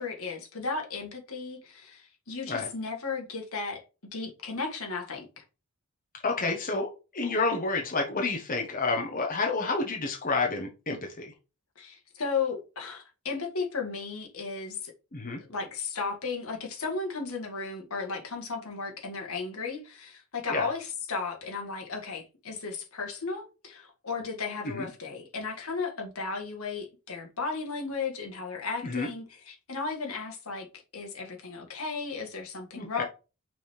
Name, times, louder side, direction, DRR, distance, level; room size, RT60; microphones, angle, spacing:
voice 1, 0.0-3.8 4.1-5.4 11.8-14.9 15.4-30.7 30.9-33.0, left 4 dB, 70° left, 1.8 m, -35 dB
voice 2, 6.2-11.3 15.1-15.4 20.5-20.7 24.6-24.9 28.8-29.1 32.7-33.0, left 3 dB, 40° left, 1.2 m, -29 dB
6.1 x 3.6 x 4.5 m
head